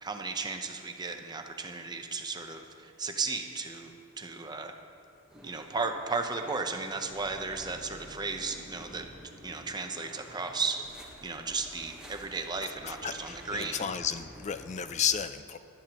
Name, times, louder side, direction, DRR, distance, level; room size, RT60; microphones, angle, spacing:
voice 1, 0.0-4.7 5.4-9.0 9.4-10.8 11.2-13.9, right 4 dB, 20° right, 5 dB, 0.7 m, -35 dB
sound 1, 5.3-15.0, equal, 5° right, 1.1 m, -50 dB
voice 2, 12.6-15.6, left 8 dB, 35° left, 11 dB, 0.4 m, -33 dB
18.5 x 12.0 x 3.0 m, 2.5 s
head